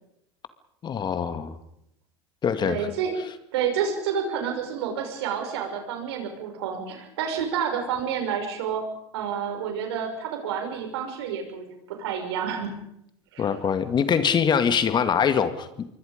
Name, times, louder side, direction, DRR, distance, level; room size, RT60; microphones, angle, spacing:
voice 1, 0.8-1.6 2.4-3.0 13.4-15.9, left 7 dB, 35° left, 10 dB, 2.1 m, -23 dB
voice 2, 2.6-3.1 3.5-8.8 9.1-12.7 13.3-13.5, right 7 dB, 70° right, 4 dB, 6.3 m, -29 dB
26.5 x 23.5 x 5.3 m, 0.78 s
hypercardioid pair, 85°, 14 cm